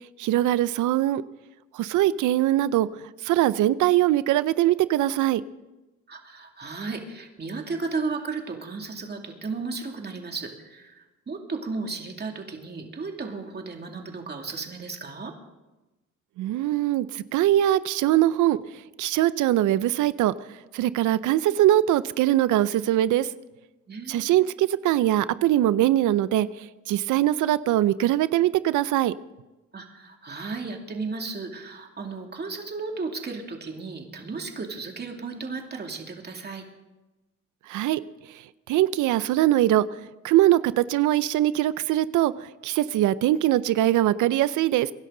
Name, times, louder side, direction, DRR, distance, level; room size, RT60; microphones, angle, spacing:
voice 1, 0.2-1.2 1.7-5.4 16.4-18.6 19.0-20.3 20.7-23.3 24.1-29.1 37.7-38.0 38.7-39.9 40.2-44.9, right 13 dB, 85° right, 16 dB, 0.6 m, -22 dB
voice 2, 6.1-15.3 23.9-24.5 29.7-36.7, right 4 dB, 35° right, 2 dB, 2.5 m, -34 dB
24.0 x 11.0 x 3.9 m, 1.1 s
cardioid pair, 90°, 30 cm